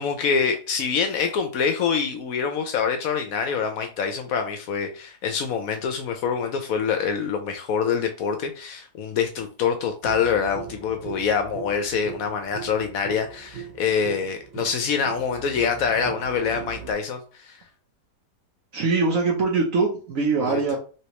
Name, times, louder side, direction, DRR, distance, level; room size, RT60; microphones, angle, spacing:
voice 1, 0.0-17.6 20.4-20.6, left 6 dB, 70° left, 0.9 m, -25 dB
sound 1, 10.0-16.9, right 8 dB, 45° right, 1.3 m, -39 dB
voice 2, 18.7-20.8, right 4 dB, 60° right, 1.0 m, -22 dB
3.3 x 3.0 x 2.9 m
omnidirectional pair, 1.8 m